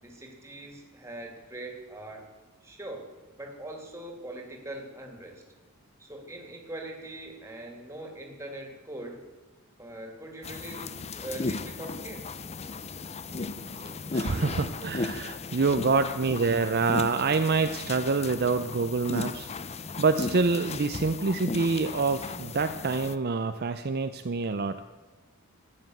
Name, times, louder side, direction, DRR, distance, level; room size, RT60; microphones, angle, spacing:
voice 1, 0.0-2.3 2.6-3.1 3.4-5.4 6.0-9.2 9.8-12.3 16.1-16.2, right 1 dB, 10° right, 2 dB, 2.6 m, -42 dB
sound 1, 10.4-23.2, left 3 dB, 30° left, 0.5 m, -36 dB
voice 2, 13.3-19.5 20.0-24.8, right 4 dB, 45° right, 8 dB, 0.6 m, -27 dB
13.5 x 9.4 x 7.9 m, 1.3 s
head